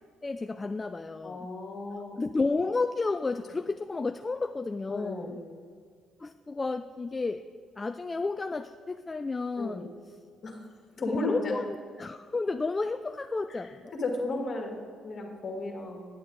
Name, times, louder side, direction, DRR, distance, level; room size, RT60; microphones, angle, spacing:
voice 1, 0.2-1.4 1.9-5.3 6.2-7.4 7.8-9.9 11.2-13.9, left 3 dB, 30° left, 9 dB, 0.3 m, -32 dB
voice 2, 1.2-2.2 4.9-5.6 9.6-9.9 10.4-10.6 11.0-11.6 13.5-16.1, left 2 dB, 50° left, 1 dB, 1.9 m, -34 dB
9.1 x 8.5 x 3.8 m, 2.1 s
supercardioid pair, 60°, 0 cm